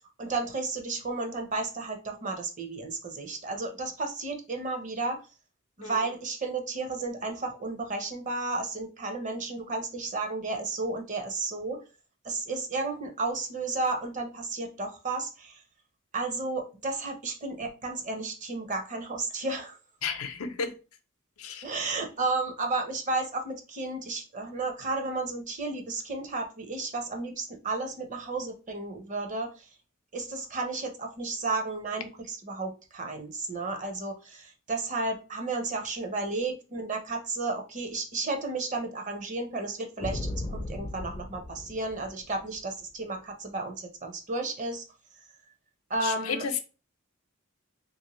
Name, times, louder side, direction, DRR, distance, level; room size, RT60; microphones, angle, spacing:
voice 1, 0.2-5.2 5.8-11.8 12.2-15.6 16.1-19.7 21.6-29.5 30.1-44.8 45.9-46.4, right 3 dB, 35° right, 0.6 m, -33 dB
voice 2, 20.0-20.7 21.4-21.6 46.0-46.6, left 6 dB, 85° left, 0.6 m, -32 dB
sound 1, 40.0-42.6, left 1 dB, 25° left, 0.4 m, -36 dB
3.2 x 2.6 x 3.0 m
head